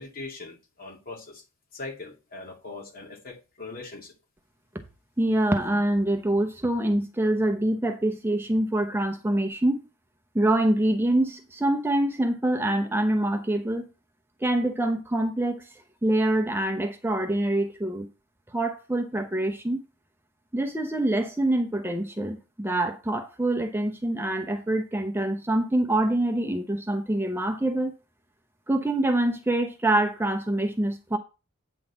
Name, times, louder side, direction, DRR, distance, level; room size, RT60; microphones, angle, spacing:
voice 1, 0.0-1.4 1.7-4.1, left 3 dB, 45° left, 2.4 m, -41 dB
voice 2, 5.2-9.8 10.3-13.9 14.4-15.7 16.0-18.1 18.5-19.8 20.5-27.9 28.7-31.2, right 1 dB, 10° right, 0.8 m, -25 dB
9.0 x 4.0 x 7.1 m
head